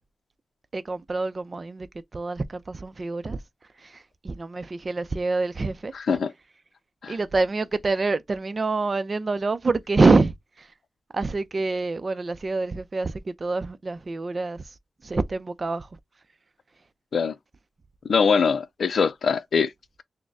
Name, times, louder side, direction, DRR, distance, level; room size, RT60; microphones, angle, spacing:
voice 1, 0.7-1.9 2.1-3.4 3.8-6.2 7.1-10.7 11.1-14.7 15.0-15.9, right 3 dB, 40° right, 0.6 m, -26 dB
voice 2, 5.9-6.3 7.0-7.2 17.1-17.4 18.0-19.7, left 5 dB, 75° left, 0.5 m, -22 dB
6.3 x 2.2 x 3.4 m
wide cardioid pair, 115°, 0 cm